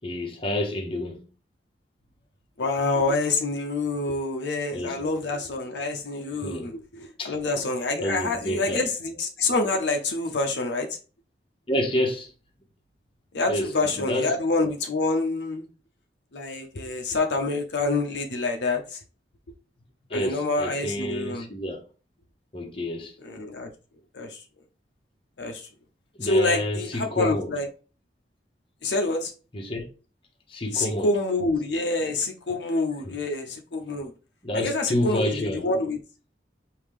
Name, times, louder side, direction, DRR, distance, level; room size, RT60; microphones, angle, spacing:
voice 1, 0.0-1.2 4.7-5.0 6.4-6.7 7.2-7.3 7.9-8.9 11.7-12.3 13.5-14.3 20.1-21.8 22.5-23.1 26.1-27.6 29.5-29.9 30.5-31.2 33.0-33.2 34.4-35.7, left 1 dB, 30° left, 1.0 m, -29 dB
voice 2, 2.6-10.9 13.3-15.7 16.3-19.0 20.1-21.5 23.2-23.7 24.1-24.4 25.4-25.7 26.2-27.7 28.8-29.3 30.7-34.1 34.5-36.0, left 2 dB, 75° left, 0.7 m, -27 dB
5.0 x 2.8 x 3.6 m
head